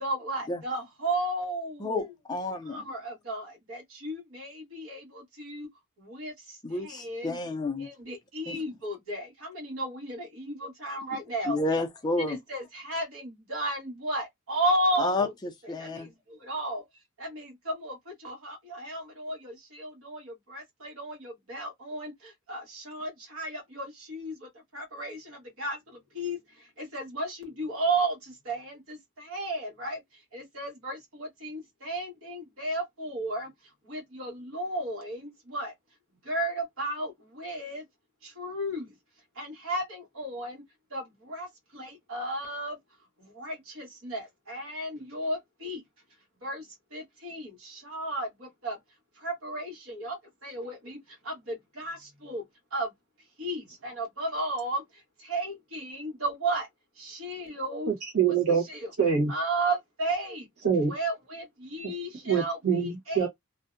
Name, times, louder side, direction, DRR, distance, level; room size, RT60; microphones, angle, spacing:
voice 1, 0.0-2.1 2.7-5.0 5.4-5.7 6.1-6.3 6.8-7.4 7.8-11.6 12.2-15.3 15.6-15.7 16.5-16.8 17.3-17.9 18.2-19.5 19.8-20.2 20.5-22.1 22.5-24.3 24.7-25.2 25.6-25.8 26.1-26.4 26.8-28.1 28.5-29.0 29.3-30.0 30.3-33.5 33.9-35.7 36.3-37.1 37.4-37.8 38.4-38.8 39.4-40.6 40.9-41.0 41.3-41.5 41.7-42.7 43.4-45.8 46.4-46.6 46.9-47.5 47.8-48.3 48.6-48.8 49.2-50.1 50.4-51.0 51.3-51.4 51.8-52.0 52.2-52.4 52.7-52.9 53.4-54.8 55.3-56.7 57.0-57.9 58.7-58.9 59.3-60.4 60.9-63.3, right 1 dB, 65° right, 1.2 m, -33 dB
voice 2, 1.8-2.8 6.6-7.9 8.5-8.6 11.5-12.4 15.0-15.3 15.7-16.1, left 2 dB, 20° left, 0.4 m, -30 dB
voice 3, 57.9-58.6 59.0-59.3 60.6-60.9 61.8-61.9 62.3-63.3, right 6 dB, 90° right, 1.2 m, -25 dB
2.6 x 2.1 x 2.4 m
head